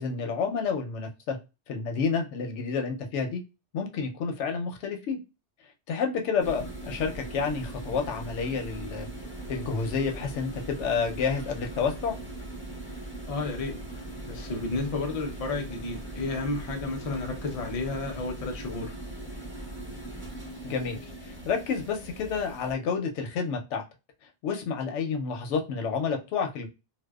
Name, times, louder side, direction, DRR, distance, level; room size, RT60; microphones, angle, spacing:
voice 1, 0.0-1.4 1.7-3.4 3.7-5.2 5.9-9.1 9.5-12.2 20.6-23.8 24.4-26.7, left 5 dB, 90° left, 4 dB, 0.9 m, -29 dB
sound 1, 6.4-22.7, right 1 dB, 15° right, 0.7 m, -40 dB
voice 2, 13.3-19.0, left 3 dB, 45° left, 3 dB, 0.5 m, -32 dB
2.6 x 2.1 x 2.2 m, 0.27 s
omnidirectional pair, 1.2 m